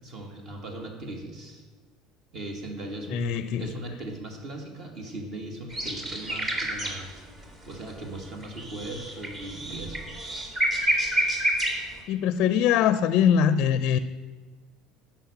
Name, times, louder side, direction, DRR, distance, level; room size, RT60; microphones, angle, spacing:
voice 1, 0.0-1.6 2.3-7.2 7.7-10.0, right 1 dB, 40° right, 3 dB, 2.2 m, -38 dB
voice 2, 3.1-3.7 12.1-14.0, left 8 dB, 55° left, 14 dB, 0.5 m, -22 dB
sound 1, 5.7-7.4 7.7-12.0, right 1 dB, 25° right, 2.2 m, -28 dB
11.5 x 6.0 x 8.8 m, 1.4 s
cardioid pair, 140°, 0 cm